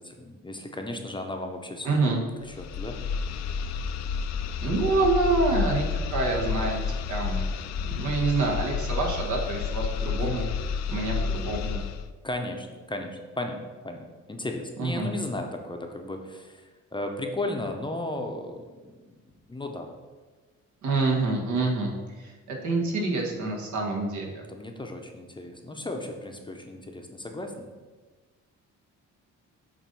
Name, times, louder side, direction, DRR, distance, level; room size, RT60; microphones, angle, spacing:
voice 1, 0.0-2.2 2.4-3.0 10.0-10.3 12.2-19.0 19.5-19.9 24.5-27.7, left 1 dB, 15° left, 3 dB, 0.7 m, -35 dB
voice 2, 1.8-2.2 4.6-7.4 7.8-10.4 10.9-11.8 14.8-15.1 20.8-24.3, right 3 dB, 70° right, 0 dB, 1.4 m, -27 dB
sound 1, 2.4-12.1, left 6 dB, 60° left, 0.5 m, -30 dB
7.3 x 2.6 x 5.3 m, 1.3 s
cardioid pair, 90°, 30 cm